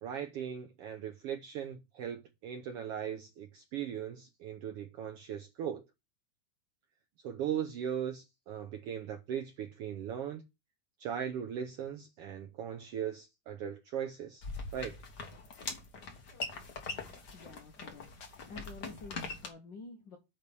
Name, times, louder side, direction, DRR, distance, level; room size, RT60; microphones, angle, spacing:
voice 1, 0.0-5.8 7.2-10.4 11.0-14.4 14.7-15.0, right 9 dB, 75° right, 1.4 m, -38 dB
sound 1, 14.4-19.5, left 3 dB, 45° left, 1.5 m, -42 dB
voice 2, 17.3-18.1 18.5-20.2, left 3 dB, 65° left, 1.1 m, -49 dB
9.6 x 3.4 x 6.8 m
omnidirectional pair, 3.5 m